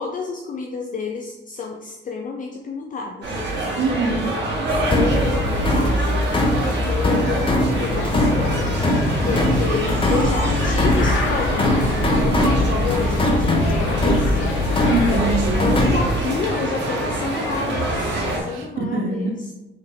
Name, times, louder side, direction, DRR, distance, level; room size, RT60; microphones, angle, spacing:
voice 1, 0.0-3.5 4.7-8.4 9.3-14.4 15.5-19.5, left 5 dB, 40° left, 2 dB, 0.5 m, -30 dB
sound 1, 3.2-18.4, right 1 dB, 60° right, 1.4 m, -26 dB
voice 2, 3.8-4.3 14.9-15.7 18.4-19.3, right 3 dB, 80° right, 3 dB, 0.8 m, -24 dB
sound 2, 4.7-16.2, left 1 dB, 25° left, 0.9 m, -21 dB
sound 3, 7.8-15.3, left 3 dB, 85° left, 0.9 m, -27 dB
3.9 x 3.5 x 3.7 m, 1.0 s
cardioid pair, 90°, 20 cm